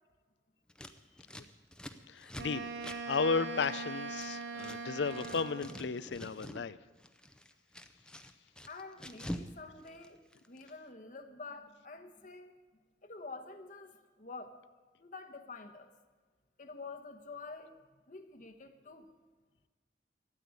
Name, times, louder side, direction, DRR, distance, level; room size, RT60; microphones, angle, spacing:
Scissors, 0.7-4.8 5.0-6.7 7.0-9.5 9.8-10.7, equal, 5° left, 0.6 m, -46 dB
voice 1, 0.9-1.2 8.1-8.2 8.7-10.2 10.5-12.5 13.0-14.6 15.0-15.9 16.6-17.8 18.1-19.1, left 3 dB, 45° left, 6 dB, 1.1 m, -48 dB
voice 2, 2.1-2.7 3.1-6.8, left 5 dB, 90° left, 16 dB, 0.5 m, -34 dB
Wind instrument woodwind instrument, 2.3-5.9, right 4 dB, 90° right, 1.2 m, -41 dB
13.0 x 8.4 x 9.5 m, 1.4 s
head